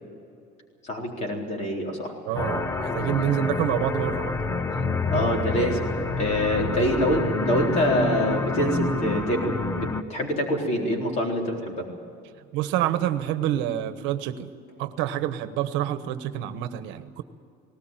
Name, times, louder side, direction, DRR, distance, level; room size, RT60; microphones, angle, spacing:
voice 1, 0.8-2.1 5.1-11.9, equal, 35° left, 0 dB, 4.0 m, -25 dB
voice 2, 2.2-4.4 5.1-5.2 12.5-14.5 14.8-17.2, right 12 dB, 75° right, 11 dB, 1.2 m, -27 dB
sound 1, 2.4-10.0, left 3 dB, 15° left, 0.7 m, -28 dB
sound 2, 6.2-7.8 8.7-8.9 14.7-14.8, left 2 dB, 90° left, 3.6 m, -39 dB
19.0 x 18.5 x 9.1 m, 2.4 s
cardioid pair, 175°, 20 cm